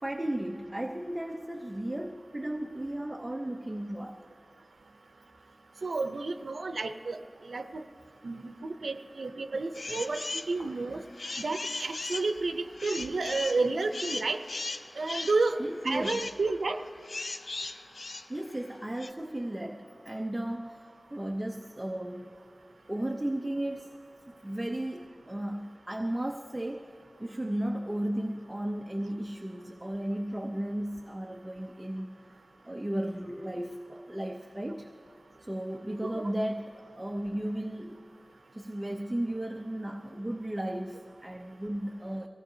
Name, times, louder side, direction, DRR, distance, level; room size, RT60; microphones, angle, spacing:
voice 1, 0.0-4.2 10.6-11.0 15.6-16.2 18.3-22.3 22.9-23.9 24.3-26.9 27.2-32.2 32.6-34.9 35.4-38.0 38.5-42.3, right 1 dB, 20° right, 3 dB, 0.7 m, -35 dB
voice 2, 5.8-7.2 7.5-7.8 8.2-8.5 8.8-11.0 11.4-14.4 15.0-15.6 15.8-16.8 36.0-36.3, right 3 dB, 80° right, 8 dB, 0.6 m, -31 dB
sound 1, 9.7-10.5 10.9-19.1, left 3 dB, 60° left, 0.6 m, -38 dB
24.0 x 17.5 x 2.8 m, 2.3 s
wide cardioid pair, 65°, 0 cm